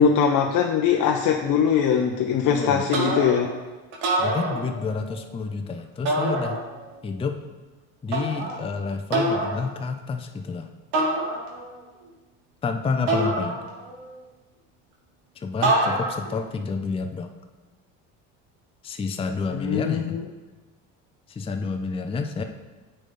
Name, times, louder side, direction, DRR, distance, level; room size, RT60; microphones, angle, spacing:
voice 1, 0.0-3.5 19.5-20.2, left 7 dB, 55° left, 2 dB, 0.7 m, -21 dB
voice 2, 2.5-2.9 4.2-6.6 7.0-7.4 8.0-10.7 12.6-13.6 15.3-17.3 18.8-20.2 21.3-22.4, left 4 dB, 15° left, 5 dB, 0.5 m, -29 dB
sound 1, 2.9-3.6 3.9-5.1 6.1-7.0 8.1-8.6 9.1-9.6 10.9-11.8 13.1-14.1 15.6-16.4, right 2 dB, 80° right, 1.4 m, -26 dB
9.0 x 4.0 x 3.8 m, 1.2 s
supercardioid pair, 85°, 37 cm